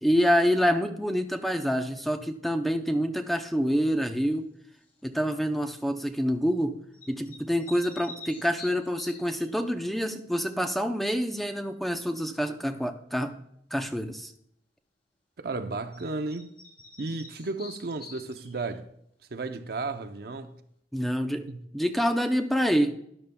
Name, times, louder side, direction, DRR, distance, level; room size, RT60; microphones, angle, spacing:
voice 1, 0.0-4.5 5.0-6.8 7.1-13.4 13.7-14.3 20.9-21.5 21.7-22.9, equal, ahead, 0.5 m, -27 dB
sound 1, 4.8-5.1 6.9-9.5 15.9-16.0 16.3-18.7, left 3 dB, 30° left, 3.4 m, -47 dB
voice 2, 15.4-16.5 17.0-18.9 19.3-20.6 21.5-21.7, right 3 dB, 60° right, 0.7 m, -34 dB
12.5 x 11.0 x 2.2 m
head